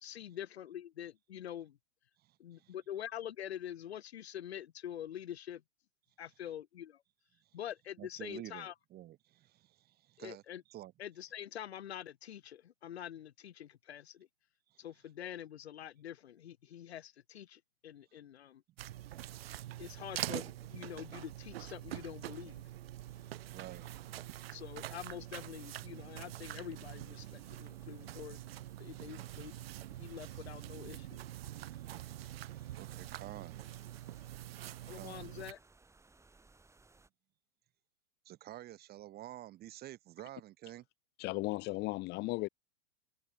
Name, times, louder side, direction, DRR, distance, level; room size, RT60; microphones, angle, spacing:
voice 1, 0.0-1.8 2.4-5.6 6.2-7.0 7.5-8.7 10.2-10.6 11.0-14.3 14.8-18.6 19.8-22.6 24.5-28.4 28.8-29.5 30.0-31.1 34.8-35.6, left 10 dB, 90° left, 0.5 m, -45 dB
voice 2, 2.2-2.7 8.0-10.4 10.7-10.9 14.7-14.8 19.1-19.8 23.2-24.1 31.6-33.7 34.9-35.3 38.2-40.8, right 14 dB, 30° right, 1.6 m, -51 dB
sound 1, 18.8-35.5, right 14 dB, 70° right, 0.6 m, -45 dB
sound 2, 23.0-37.1, right 3 dB, 10° right, 4.3 m, -66 dB
voice 3, 41.2-42.5, left 21 dB, 35° left, 0.8 m, -35 dB
hypercardioid pair, 105°, 31 cm